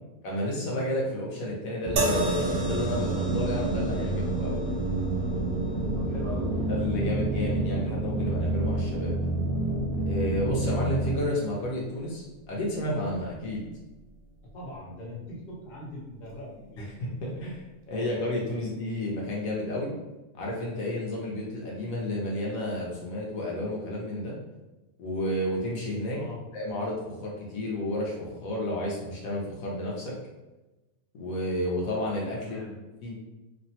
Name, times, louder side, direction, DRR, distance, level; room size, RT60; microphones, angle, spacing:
voice 1, 0.2-4.6 6.7-9.1 10.0-13.7 16.8-19.9 20.3-24.3 25.0-26.2 26.5-30.1 31.1-32.6 33.0-33.2, left 1 dB, 75° left, -3 dB, 1.0 m, -31 dB
sound 1, 1.8-11.3, right 2 dB, 45° right, 0.4 m, -29 dB
sound 2, 2.0-15.3 16.2-16.4, right 3 dB, 85° right, 1.1 m, -37 dB
voice 2, 5.9-6.7 14.5-16.9 26.1-26.4 32.4-32.7, left 1 dB, 40° left, -5 dB, 0.7 m, -40 dB
2.7 x 2.1 x 2.7 m, 1.1 s
omnidirectional pair, 1.5 m